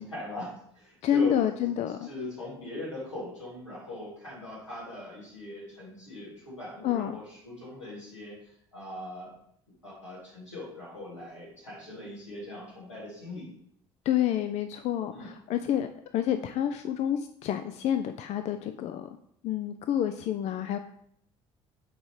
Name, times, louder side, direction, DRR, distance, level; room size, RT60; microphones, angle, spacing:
voice 1, 0.0-1.7 2.0-8.4 8.7-9.3 9.8-13.5 15.1-15.3, left 1 dB, 85° left, -6 dB, 2.1 m, -40 dB
voice 2, 1.0-2.1 6.8-7.2 14.1-19.1 19.4-20.8, left 10 dB, 50° left, 8 dB, 0.4 m, -28 dB
8.6 x 3.6 x 3.1 m, 0.68 s
figure-of-eight pair, 50°, 15 cm